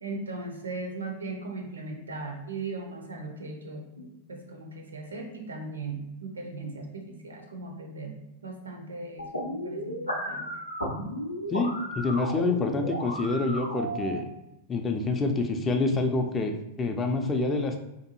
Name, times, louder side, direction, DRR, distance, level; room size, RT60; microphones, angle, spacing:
voice 1, 0.0-8.2 8.4-10.5, right 3 dB, 75° right, 3 dB, 0.4 m, -38 dB
sound 1, 9.2-14.2, equal, 85° left, 0.5 m, -34 dB
voice 2, 11.5-14.2 14.7-17.8, left 3 dB, 20° left, 4 dB, 0.3 m, -27 dB
2.6 x 2.2 x 2.8 m, 0.90 s
figure-of-eight pair, 90°, 0 cm